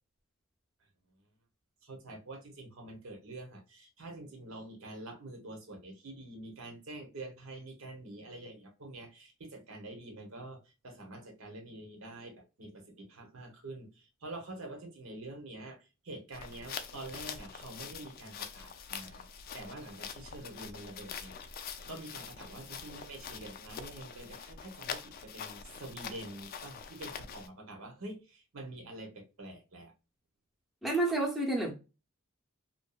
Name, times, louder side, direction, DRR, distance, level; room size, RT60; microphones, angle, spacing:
voice 1, 1.8-21.3 21.9-29.9, right 2 dB, 75° right, 0.9 m, -46 dB
sound 1, 16.3-27.5, left 7 dB, 45° left, 0.3 m, -44 dB
voice 2, 30.8-31.7, right 2 dB, ahead, 0.6 m, -29 dB
2.6 x 2.4 x 2.2 m
head